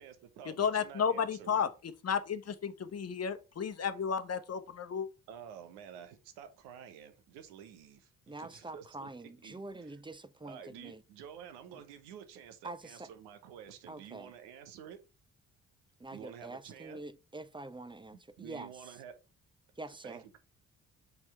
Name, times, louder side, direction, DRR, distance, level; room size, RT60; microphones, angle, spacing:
voice 1, 0.0-1.7 5.3-10.0 10.4-15.0 16.1-17.0 18.1-19.1 20.0-20.4, right 8 dB, 80° right, 1.0 m, -50 dB
voice 2, 0.6-1.7 2.0-5.1, left 7 dB, 40° left, 1.0 m, -32 dB
voice 3, 8.3-11.0 12.6-13.1 13.9-14.3 16.0-18.7 19.8-20.2, right 2 dB, 10° right, 0.6 m, -45 dB
5.6 x 4.5 x 4.3 m
hypercardioid pair, 40°, 39 cm